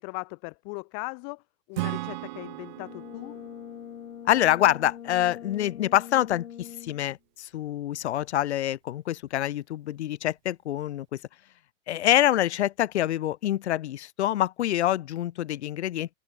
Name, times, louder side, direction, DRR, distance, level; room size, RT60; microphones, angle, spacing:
voice 1, 0.0-1.4 1.7-3.4, left 40 dB or more, 25° left, 2.7 m, -38 dB
Acoustic guitar / Strum, 1.7-5.3, right 18 dB, 35° right, 1.4 m, -37 dB
Brass instrument, 2.7-7.1, left 9 dB, 80° left, 7.4 m, -43 dB
voice 2, 4.3-11.1 11.9-16.1, left 13 dB, 55° left, 2.0 m, -26 dB
open air
hypercardioid pair, 170°, 40 cm